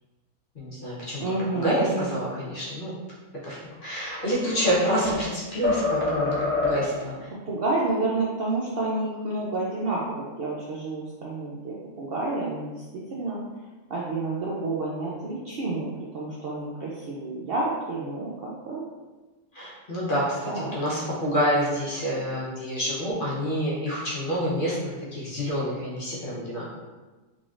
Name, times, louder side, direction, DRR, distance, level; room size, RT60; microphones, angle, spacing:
voice 1, 0.6-1.2 1.5-2.9 3.4-7.1 19.5-24.8 25.1-26.6, equal, 45° left, -7 dB, 0.9 m, -27 dB
voice 2, 1.2-2.1 7.5-13.4 13.9-15.9 16.1-18.8 20.5-20.7, right 2 dB, 65° right, -6 dB, 0.6 m, -29 dB
sound 1, 3.9-5.3 5.6-7.0, left 3 dB, 10° left, 0.6 m, -27 dB
3.8 x 3.3 x 2.4 m, 1.2 s
omnidirectional pair, 1.5 m